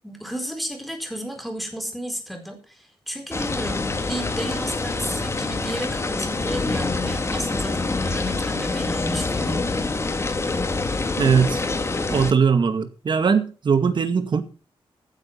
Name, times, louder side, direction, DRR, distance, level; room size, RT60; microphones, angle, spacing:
voice 1, 0.0-9.7, equal, ahead, 4.4 m, -33 dB
sound 1, 3.3-12.3, left 3 dB, 25° left, 1.7 m, -26 dB
voice 2, 11.2-11.6 12.1-14.4, right 6 dB, 50° right, 2.1 m, -20 dB
15.0 x 9.7 x 5.9 m
wide cardioid pair, 140°, 10 cm